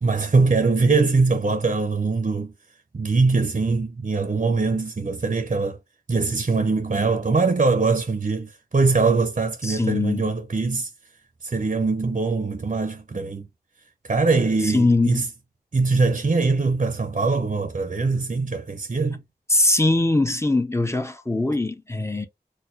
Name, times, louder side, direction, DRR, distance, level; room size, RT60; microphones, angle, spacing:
voice 1, 0.0-2.5 2.9-5.8 6.1-10.9 11.4-13.5 14.0-15.3 15.7-19.2, right 4 dB, 45° right, 0.5 m, -22 dB
voice 2, 9.6-10.3 14.6-15.3 19.5-22.3, left 2 dB, 15° left, 0.5 m, -21 dB
4.1 x 2.1 x 2.5 m
wide cardioid pair, 50°, 17 cm